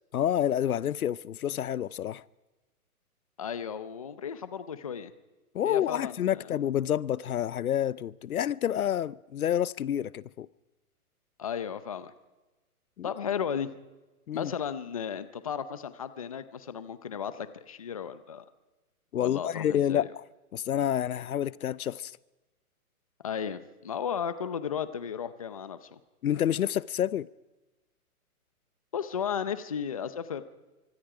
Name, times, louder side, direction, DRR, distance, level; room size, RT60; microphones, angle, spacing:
voice 1, 0.1-2.2 5.5-10.5 13.0-13.1 14.3-14.5 19.1-20.2 20.5-22.1 26.2-27.3, left 10 dB, 70° left, 0.7 m, -28 dB
voice 2, 3.4-5.1 5.6-6.5 11.4-12.1 13.0-13.7 14.3-18.4 19.2-20.1 23.2-26.0 28.9-30.4, left 7 dB, 25° left, 0.6 m, -34 dB
25.0 x 24.5 x 4.9 m
hypercardioid pair, 170°, 45 cm